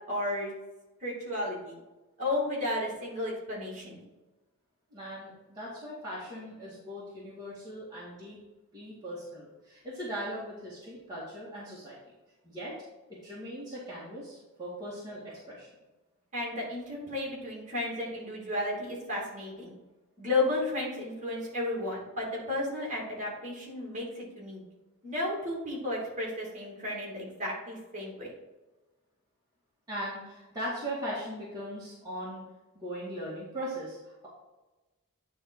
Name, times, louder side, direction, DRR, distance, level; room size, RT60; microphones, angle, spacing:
voice 1, 0.1-0.5 1.0-1.7 2.2-4.0 16.3-19.7 20.2-24.6 25.0-28.3, left 2 dB, 35° right, -3 dB, 2.7 m, -33 dB
voice 2, 4.9-8.4 8.7-12.0 12.4-12.8 13.1-15.7 29.9-32.4 32.7-34.3, equal, 15° right, -9 dB, 2.0 m, -39 dB
9.6 x 3.7 x 4.6 m, 1.1 s
head